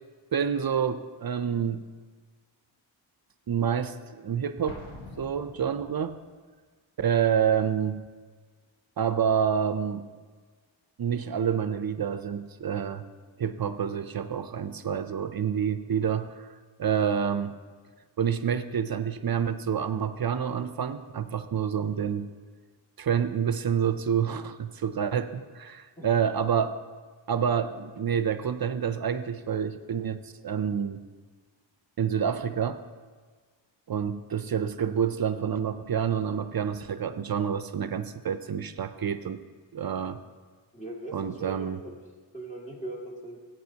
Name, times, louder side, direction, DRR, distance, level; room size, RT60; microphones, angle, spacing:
voice 1, 0.3-1.9 3.5-4.8 5.2-6.2 7.0-8.0 9.0-10.1 11.0-13.1 13.4-16.5 16.8-17.6 18.2-22.3 23.0-26.8 27.3-31.0 32.0-32.8 33.9-39.4 39.7-40.2 41.1-41.8, right 8 dB, 50° right, 11 dB, 0.5 m, -28 dB
Explosion, 4.7-6.3, left 1 dB, 85° left, 1.3 m, -45 dB
voice 2, 40.7-42.0 42.3-43.4, right 2 dB, 15° left, -3 dB, 2.1 m, -39 dB
16.0 x 8.7 x 2.8 m, 1.5 s
wide cardioid pair, 90°, 46 cm